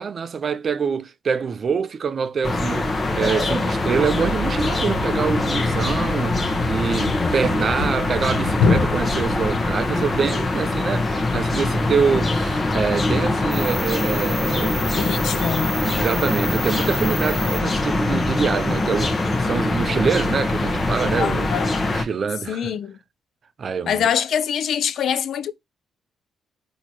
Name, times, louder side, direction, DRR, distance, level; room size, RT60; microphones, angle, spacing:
voice 1, 0.0-15.2 15.8-21.5 21.8-22.7 23.6-24.1, right 6 dB, 45° right, 0.4 m, -25 dB
sound 1, 2.4-22.0, left 2 dB, 30° left, 0.9 m, -23 dB
Thump thud, 3.7-9.9, left 4 dB, 90° left, 0.8 m, -27 dB
voice 2, 7.0-7.4 11.8-11.9 15.0-15.7 21.2-21.7 22.5-23.0 23.8-25.5, left 8 dB, 65° left, 0.5 m, -24 dB
sound 2, 13.5-19.2, equal, ahead, 1.3 m, -34 dB
4.3 x 2.8 x 4.3 m
cardioid pair, 90°, 0 cm